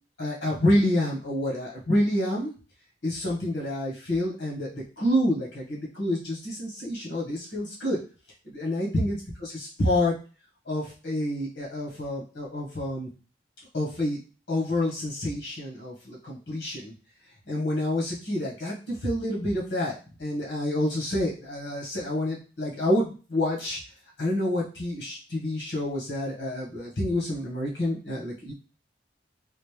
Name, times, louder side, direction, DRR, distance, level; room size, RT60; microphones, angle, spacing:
voice 1, 0.2-2.5 3.0-8.0 8.5-10.1 10.6-13.1 13.7-14.2 14.5-16.9 17.5-23.8 24.2-28.5, left 1 dB, 85° left, -4 dB, 1.7 m, -28 dB
4.2 x 2.7 x 3.4 m, 0.35 s
head